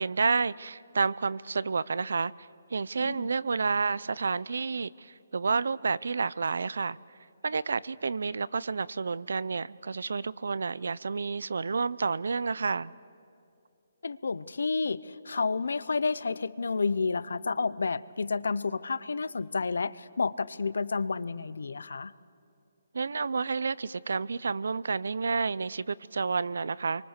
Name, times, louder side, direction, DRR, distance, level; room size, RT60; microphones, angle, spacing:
voice 1, 0.0-2.3 2.7-7.0 7.4-12.9 22.9-27.1, right 4 dB, 75° right, 21 dB, 0.5 m, -30 dB
voice 2, 14.0-22.1, left 4 dB, 85° left, 18 dB, 0.7 m, -30 dB
27.0 x 24.5 x 6.6 m, 2.6 s
hypercardioid pair, 175°, 0 cm